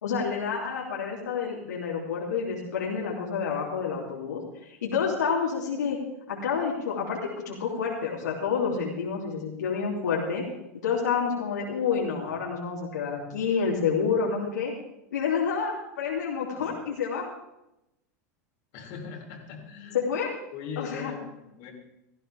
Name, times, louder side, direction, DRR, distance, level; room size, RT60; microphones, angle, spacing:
voice 1, 0.0-6.0 6.3-10.5 10.8-14.7 15.1-17.3 19.9-20.3 20.8-21.1, left 6 dB, 80° left, -3 dB, 2.9 m, -29 dB
voice 2, 18.7-20.0 20.5-21.7, left 6 dB, 55° left, 2 dB, 3.5 m, -39 dB
17.5 x 14.5 x 3.5 m, 0.86 s
hypercardioid pair, 95°, 9 cm